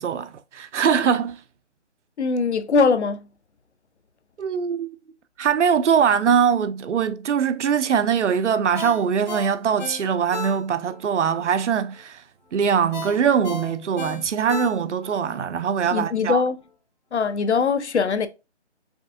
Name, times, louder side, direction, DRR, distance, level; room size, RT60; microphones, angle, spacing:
voice 1, 0.0-1.4 4.4-4.9 5.4-12.2 12.5-16.4, right 7 dB, 90° right, 0.6 m, -22 dB
voice 2, 2.2-3.2 15.9-16.6 17.1-18.3, left 5 dB, 70° left, 0.7 m, -21 dB
Ringtone, 8.7-11.0 11.4-11.5 12.9-15.2 15.6-15.7, left 3 dB, 40° left, 0.8 m, -34 dB
5.2 x 3.4 x 2.5 m
hypercardioid pair, 180°, 35 cm